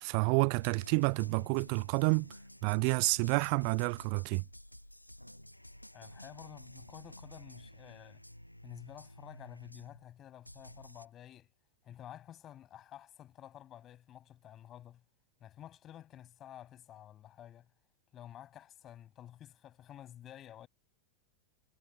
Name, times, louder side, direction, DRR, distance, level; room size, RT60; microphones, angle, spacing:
voice 1, 0.0-2.3 2.6-4.4, right 40 dB or more, 45° right, 0.3 m, -29 dB
sound 1, 0.6-10.1 10.4-11.1, left 1 dB, 90° left, 1.1 m, -52 dB
voice 2, 5.9-8.2 8.6-11.5 11.8-15.0 15.4-17.7 18.1-20.7, left 11 dB, 30° left, 7.1 m, -51 dB
figure-of-eight pair, 90°, 0 cm